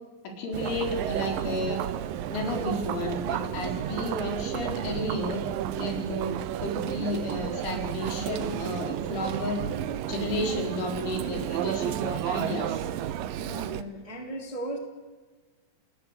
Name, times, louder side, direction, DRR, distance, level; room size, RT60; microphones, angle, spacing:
voice 1, 0.2-1.8 2.3-5.4 5.7-9.6 10.1-12.8, left 1 dB, 85° left, 2 dB, 6.9 m, -32 dB
Chatter, 0.5-13.8, right 11 dB, 85° right, 2.0 m, -32 dB
voice 2, 13.4-14.8, right 1 dB, 10° right, 3 dB, 2.0 m, -36 dB
29.0 x 19.5 x 8.2 m, 1.3 s
omnidirectional pair, 5.3 m